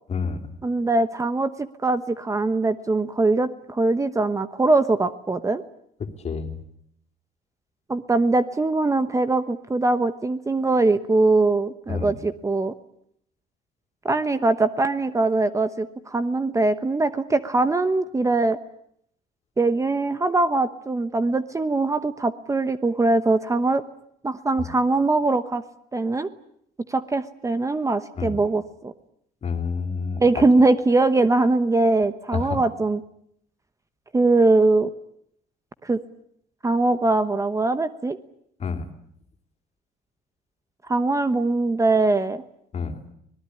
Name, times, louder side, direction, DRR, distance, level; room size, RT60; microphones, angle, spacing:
voice 1, 0.6-5.6 7.9-12.7 14.0-18.6 19.6-23.8 24.2-25.6 25.9-26.3 26.9-28.9 30.2-33.0 34.1-34.9 35.8-36.0 36.6-38.2 40.8-42.4, right 2 dB, 20° right, 12 dB, 1.1 m, -22 dB
voice 2, 6.2-6.6 11.9-12.1 24.6-24.7 28.2-28.4 29.4-30.4 32.3-32.6 38.6-38.9 42.7-43.0, left 5 dB, 40° left, 7 dB, 3.1 m, -28 dB
25.0 x 19.0 x 9.9 m, 0.72 s
cardioid pair, 110°, 17 cm